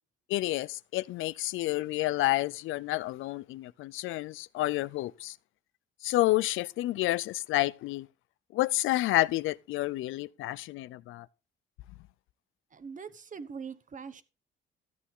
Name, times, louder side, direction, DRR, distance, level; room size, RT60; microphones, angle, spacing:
voice 1, 0.3-5.3 6.0-8.1 8.5-11.3, left 17 dB, 85° left, 0.5 m, -29 dB
voice 2, 12.7-14.2, right 6 dB, 40° right, 1.1 m, -42 dB
13.5 x 8.4 x 3.8 m
cardioid pair, 90°, 20 cm